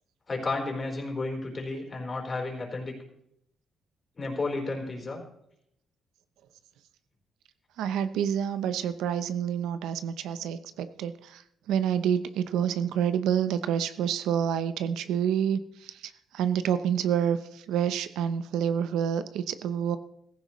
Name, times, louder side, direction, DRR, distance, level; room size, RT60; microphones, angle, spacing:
voice 1, 0.3-2.9 4.2-5.2, left 3 dB, 35° left, 0 dB, 4.1 m, -32 dB
voice 2, 7.8-11.4 11.7-20.0, right 8 dB, 85° right, 12 dB, 0.7 m, -28 dB
15.5 x 14.5 x 3.1 m, 0.74 s
cardioid pair, 90°, 0 cm